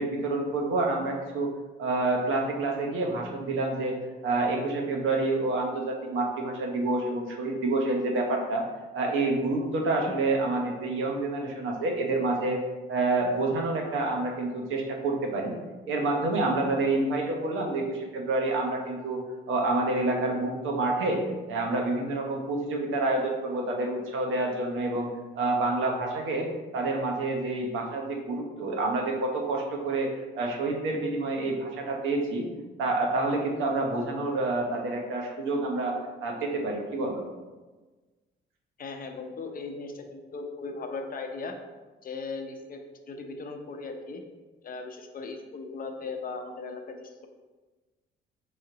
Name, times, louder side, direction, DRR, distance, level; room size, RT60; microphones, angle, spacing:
voice 1, 0.0-1.5 1.8-4.0 4.2-8.7 8.9-12.6 12.9-15.6 15.9-19.2 19.5-21.2 21.5-25.1 25.3-32.4 32.8-37.2, right 2 dB, 80° right, 1 dB, 0.9 m, -28 dB
voice 2, 38.8-41.6 42.0-42.8 43.1-44.2 44.6-47.3, left 4 dB, 45° left, 4 dB, 0.6 m, -38 dB
4.9 x 2.8 x 3.8 m, 1.3 s
cardioid pair, 90°, 20 cm